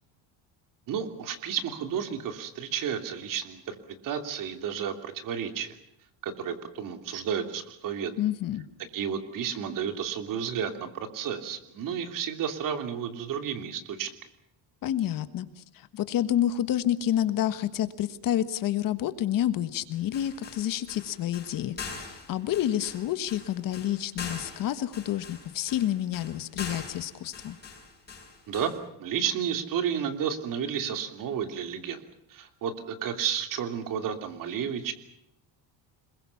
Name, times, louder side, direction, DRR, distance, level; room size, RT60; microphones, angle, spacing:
voice 1, 0.9-3.8 4.0-5.8 6.2-8.1 8.9-14.1 28.5-28.7 29.0-32.0 32.3-34.9, right 8 dB, 45° right, 8 dB, 3.0 m, -32 dB
voice 2, 8.2-8.7 14.8-27.6, left 11 dB, 50° left, 12 dB, 1.5 m, -29 dB
sound 1, 19.9-28.8, left 5 dB, 20° left, 7.1 m, -42 dB
26.5 x 22.0 x 7.1 m, 0.77 s
cardioid pair, 170°, 44 cm